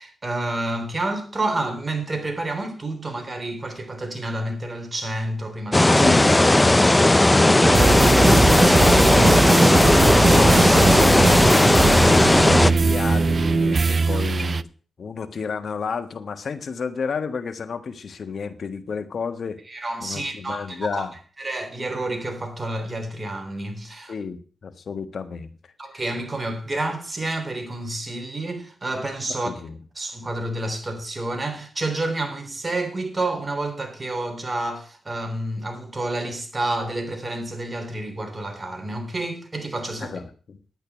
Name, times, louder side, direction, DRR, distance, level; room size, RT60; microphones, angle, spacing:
voice 1, 0.0-6.2 19.7-21.1 21.4-24.1 25.8-29.5 30.0-40.1, right 2 dB, 30° right, 3.5 m, -29 dB
sound 1, 5.7-12.7, left 1 dB, 20° left, 0.7 m, -16 dB
voice 2, 5.9-14.7 15.0-19.6 20.0-21.2 24.1-25.5 25.9-26.0 29.3-29.8 40.0-40.6, left 5 dB, 65° left, 1.4 m, -31 dB
sound 2, 7.6-14.6, right 4 dB, 50° right, 0.5 m, -20 dB
10.5 x 9.1 x 6.1 m
cardioid pair, 60°, 0 cm